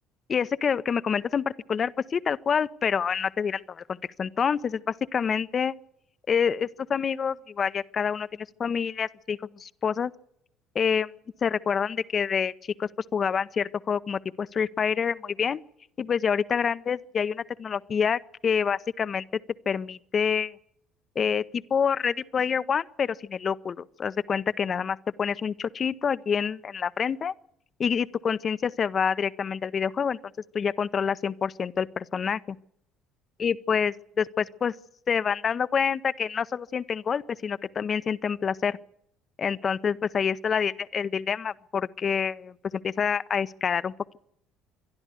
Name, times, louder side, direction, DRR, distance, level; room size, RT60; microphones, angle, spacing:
voice 1, 0.3-5.7 6.3-10.1 10.7-11.1 11.4-15.6 16.0-19.2 19.7-20.6 21.2-27.3 27.8-30.2 30.5-32.6 33.4-34.8 35.1-38.8 39.4-43.9, left 7 dB, 40° left, 0.7 m, -27 dB
26.5 x 11.5 x 8.3 m
hypercardioid pair, 60°, 0 cm